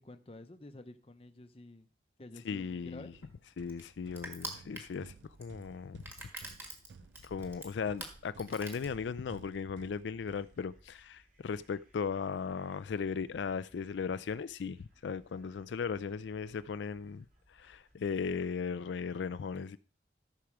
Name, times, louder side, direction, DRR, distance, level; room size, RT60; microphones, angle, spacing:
voice 1, 0.0-1.9 2.2-3.1, left 2 dB, 30° left, 0.8 m, -50 dB
voice 2, 2.5-3.1 3.6-5.1 5.4-6.0 7.2-19.8, left 6 dB, 85° left, 0.4 m, -37 dB
Crushing, 2.6-9.4, right 2 dB, 10° right, 1.6 m, -47 dB
sound 1, 3.1-11.1, right 5 dB, 80° right, 0.4 m, -57 dB
sound 2, 3.9-18.4, equal, 45° right, 3.0 m, -67 dB
13.5 x 4.9 x 6.0 m
head